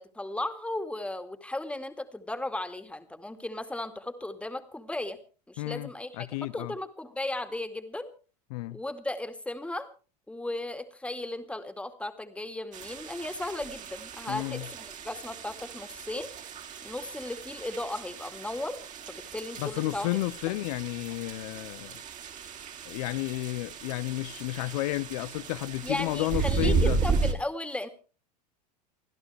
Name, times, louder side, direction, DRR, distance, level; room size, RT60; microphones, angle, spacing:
voice 1, 0.0-5.2 5.5-8.1 8.7-9.9 10.3-16.3 16.8-18.8 19.1-20.1 25.8-27.9, left 1 dB, 5° left, 2.2 m, -36 dB
voice 2, 5.6-6.7 8.5-8.8 14.3-14.7 19.6-22.0 22.8-27.0, left 18 dB, 70° left, 0.7 m, -32 dB
sound 1, 12.7-27.3, right 5 dB, 40° right, 3.0 m, -34 dB
29.5 x 12.0 x 3.4 m
hypercardioid pair, 100°, 21 cm